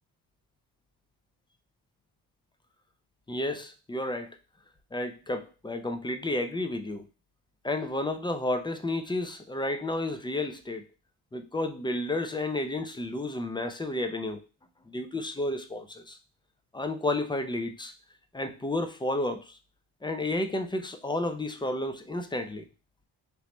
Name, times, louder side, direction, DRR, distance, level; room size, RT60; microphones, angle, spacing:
voice 1, 3.3-4.4 4.9-7.1 7.6-10.8 11.3-14.4 14.9-16.2 16.7-17.9 18.3-19.6 20.0-22.7, left 2 dB, 10° left, 7 dB, 0.4 m, -31 dB
3.1 x 3.0 x 3.0 m, 0.34 s
supercardioid pair, 70°, 44 cm